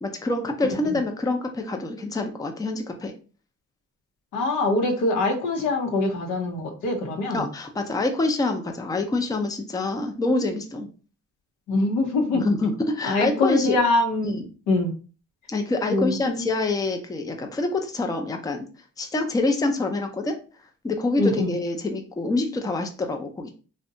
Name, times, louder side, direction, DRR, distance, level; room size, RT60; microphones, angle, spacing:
voice 1, 0.0-3.1 7.3-10.9 12.3-13.8 14.2-14.4 15.5-18.7 19.0-20.4 20.8-23.5, left 2 dB, 10° left, 5 dB, 0.4 m, -26 dB
voice 2, 4.3-7.4 11.7-12.4 13.0-14.4 14.7-14.9 15.9-16.5 21.2-21.5, left 2 dB, 90° left, 3 dB, 0.7 m, -23 dB
2.7 x 2.1 x 2.5 m, 0.36 s
cardioid pair, 90°, 30 cm